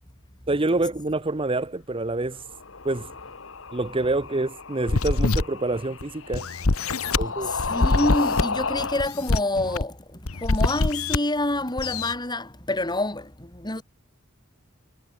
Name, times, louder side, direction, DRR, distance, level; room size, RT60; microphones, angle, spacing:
voice 1, 0.5-2.4 2.8-3.1 3.7-6.5 7.2-7.5, right 2 dB, 25° right, 0.8 m, -26 dB
sound 1, 2.4-9.1, left 4 dB, 65° left, 1.7 m, -32 dB
sound 2, 4.9-5.4 6.0-6.1 6.3-7.2 7.6-8.4 9.0-9.8 10.3-11.2 11.8-12.1, left 3 dB, 90° left, 1.3 m, -24 dB
voice 2, 7.5-10.0 10.4-13.8, left 1 dB, 20° left, 4.5 m, -27 dB
head